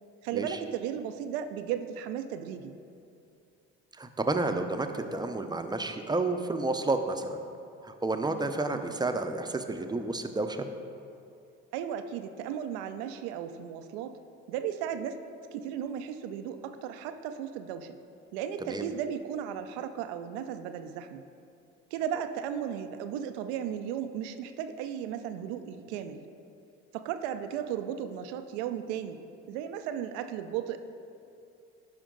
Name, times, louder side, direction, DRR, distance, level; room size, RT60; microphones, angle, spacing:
voice 1, 0.2-2.8 11.7-14.1 14.5-15.1 15.4-18.0 18.3-21.2 21.9-26.2 26.9-29.2 29.5-30.8, right 9 dB, 80° right, 9 dB, 0.5 m, -35 dB
voice 2, 4.0-7.4 7.8-10.7 18.6-18.9, right 2 dB, 10° right, 6 dB, 0.7 m, -30 dB
11.0 x 5.1 x 3.9 m, 2.5 s
hypercardioid pair, 55°, 33 cm